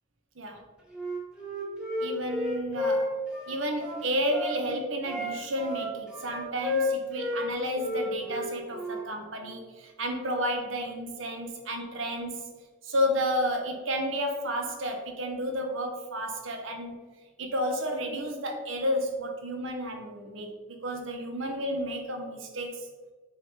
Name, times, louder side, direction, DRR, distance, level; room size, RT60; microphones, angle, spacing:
Wind instrument woodwind instrument, 0.9-4.6 5.0-7.5 7.8-9.1, left 1 dB, 5° right, 1.2 m, -32 dB
voice 1, 2.0-3.2 3.5-12.5 12.8-17.0 17.4-22.9, equal, 70° right, 3 dB, 1.1 m, -31 dB
6.8 x 3.5 x 4.3 m, 1.4 s
head